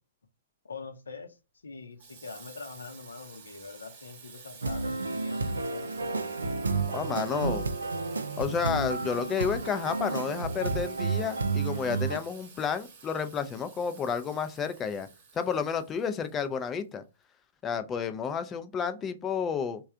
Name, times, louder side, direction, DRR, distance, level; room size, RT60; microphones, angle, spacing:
voice 1, 0.6-1.4 1.6-5.9, left 4 dB, 75° left, 0.7 m, -44 dB
Water tap faucet / Sink (filling or washing), 2.0-16.8, right 5 dB, 45° right, 1.1 m, -51 dB
sound 1, 4.6-12.2, right 3 dB, 80° right, 0.4 m, -31 dB
voice 2, 6.9-7.7 8.4-15.1 15.3-17.0 17.6-19.8, left 6 dB, 20° left, 0.4 m, -31 dB
3.2 x 2.3 x 3.6 m
figure-of-eight pair, 115°, 0 cm